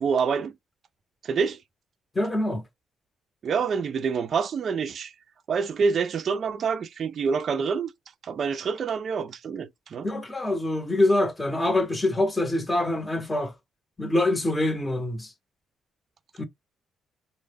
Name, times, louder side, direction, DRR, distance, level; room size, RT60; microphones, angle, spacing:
voice 1, 0.0-0.5 1.2-1.6 3.4-5.1 5.5-7.9 8.2-10.1, right 5 dB, 55° right, 0.3 m, -27 dB
voice 2, 2.2-2.6 10.0-13.5 14.0-15.3 16.4-16.5, left 1 dB, 15° left, 0.7 m, -25 dB
2.0 x 2.0 x 3.3 m
cardioid pair, 90°, 0 cm